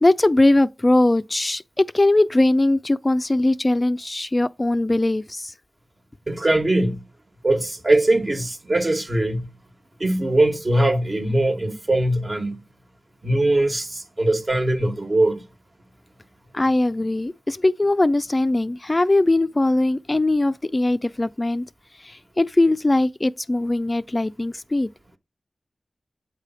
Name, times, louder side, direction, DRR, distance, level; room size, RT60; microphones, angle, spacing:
voice 1, 0.0-5.5 16.5-21.7 22.0-24.9, left 2 dB, 30° left, 0.3 m, -20 dB
voice 2, 6.3-7.0 7.4-9.5 10.0-12.6 13.2-15.4, right 1 dB, 45° right, 1.3 m, -21 dB
8.2 x 3.3 x 5.5 m
cardioid pair, 50°, 0 cm